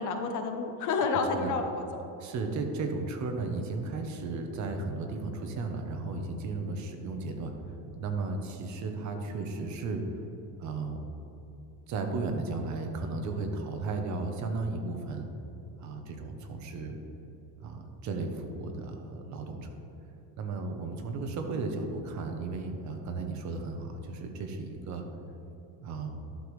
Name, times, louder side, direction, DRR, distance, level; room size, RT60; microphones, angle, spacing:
voice 1, 0.0-2.0, left 4 dB, 50° left, 5 dB, 0.8 m, -30 dB
voice 2, 2.2-7.5 8.0-10.0 10.6-11.0 11.9-15.3 15.8-17.0 17.6-19.7 20.4-25.1 25.8-26.2, right 3 dB, 45° right, 5 dB, 0.9 m, -34 dB
11.5 x 6.8 x 3.2 m, 3.0 s
cardioid pair, 150°, 40 cm